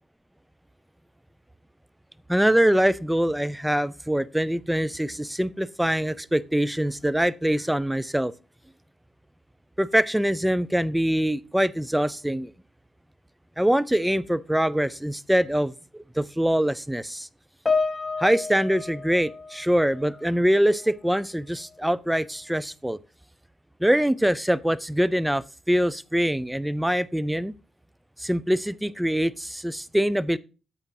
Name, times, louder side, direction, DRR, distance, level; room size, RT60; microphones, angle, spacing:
voice 1, 2.3-8.3 9.8-12.5 13.6-17.3 18.2-23.0 23.8-27.5 28.2-30.4, equal, 5° right, 0.5 m, -24 dB
Piano, 17.7-20.3 20.6-20.9 21.7-21.8, left 4 dB, 25° left, 0.9 m, -30 dB
8.3 x 8.1 x 2.8 m
supercardioid pair, 60°, 0 cm